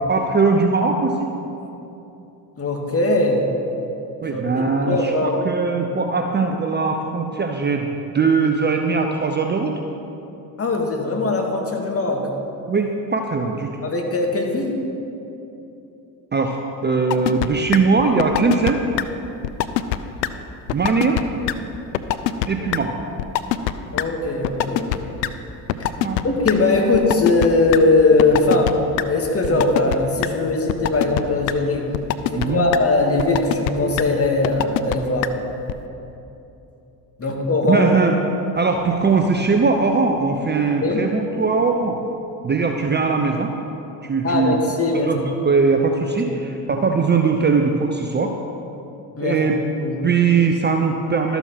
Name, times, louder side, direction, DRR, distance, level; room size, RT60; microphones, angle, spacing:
voice 1, 0.1-1.3 4.2-7.9 8.1-9.8 12.7-13.7 16.3-18.8 20.7-21.2 22.5-23.0 26.0-26.2 29.5-29.7 32.3-32.6 37.7-38.2 38.5-42.0 42.4-43.5 44.0-44.6 44.9-48.3 49.2-49.6 50.0-51.4, right 4 dB, 20° right, 4 dB, 0.7 m, -20 dB
voice 2, 2.6-3.5 4.3-5.4 10.6-12.3 13.8-14.8 22.6-22.7 23.9-25.1 26.2-28.7 29.1-31.9 32.3-35.3 37.2-37.9 40.8-41.1 44.2-45.1 46.2-46.4 49.2-49.4 49.8-50.0, left 3 dB, 30° left, 1 dB, 1.9 m, -20 dB
sound 1, 17.1-17.5 17.7-17.8 18.2-18.7 19.0-19.1 19.4-20.0 20.2-20.3 20.7-21.2 21.5-21.6 21.9-22.5 22.7-22.8 23.2-23.7 24.0-24.1 24.4-25.0 25.2-25.3 25.7-26.5 26.9-27.8 28.2-28.7 29.0-29.1 29.4-30.0 30.2-30.3 30.7-31.2 31.5-31.6 31.9-32.5 32.7-32.8 33.2-33.7 34.0-34.1 34.4-35.0 35.2-35.3 35.7-35.8, left 14 dB, 85° left, 0.6 m, -21 dB
12.5 x 7.1 x 5.8 m, 2.9 s
hypercardioid pair, 70°, 49 cm